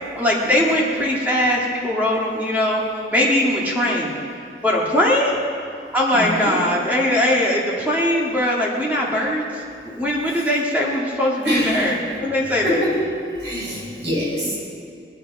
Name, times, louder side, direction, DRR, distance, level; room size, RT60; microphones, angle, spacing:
voice 1, 0.1-2.8 3.1-4.2 4.6-5.4 5.9-9.4 9.9-12.8, left 1 dB, 10° right, -4 dB, 1.9 m, -20 dB
voice 2, 6.1-6.6 10.3-10.4 11.4-12.0 12.6-13.0 13.4-14.6, equal, 85° right, -3 dB, 4.6 m, -25 dB
20.0 x 10.0 x 5.4 m, 2.5 s
head